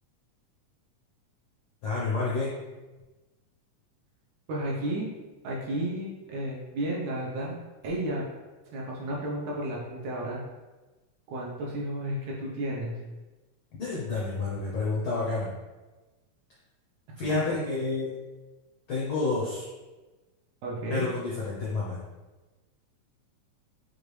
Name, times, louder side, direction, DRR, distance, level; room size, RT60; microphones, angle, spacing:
voice 1, 1.8-2.6 13.8-15.5 17.2-18.2 18.9-19.7 20.9-22.0, left 3 dB, 80° left, -5 dB, 1.1 m, -29 dB
voice 2, 4.5-5.1 5.4-7.6 7.8-8.3 8.7-10.4 11.3-13.0 17.3-17.6 20.6-21.1, right 1 dB, 75° right, -4 dB, 2.0 m, -32 dB
6.5 x 2.5 x 3.2 m, 1.2 s
omnidirectional pair, 3.4 m